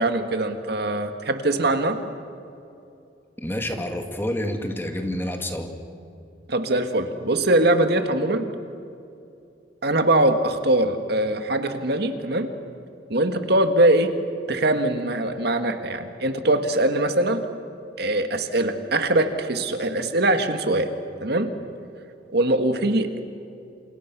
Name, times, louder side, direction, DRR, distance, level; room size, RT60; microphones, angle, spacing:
voice 1, 0.0-2.0 6.5-8.5 9.8-12.5 13.1-14.1 14.5-17.4 18.0-20.9 21.2-21.5 22.3-23.2, right 1 dB, 60° right, 7 dB, 1.8 m, -22 dB
voice 2, 3.4-5.7, left 1 dB, 15° left, 4 dB, 2.2 m, -28 dB
28.5 x 28.0 x 6.1 m, 2.6 s
head